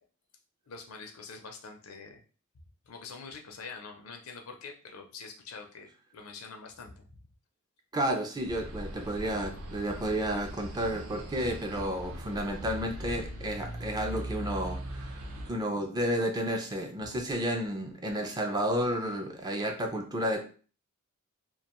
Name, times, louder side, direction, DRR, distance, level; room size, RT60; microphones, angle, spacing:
voice 1, 0.7-2.2 2.9-7.1, left 4 dB, 70° left, 3 dB, 0.5 m, -45 dB
voice 2, 7.9-15.1 15.5-20.4, equal, 20° right, 3 dB, 0.4 m, -31 dB
sound 1, 8.4-15.5, right 1 dB, 75° right, 0.6 m, -40 dB
2.4 x 2.2 x 2.9 m, 0.39 s
head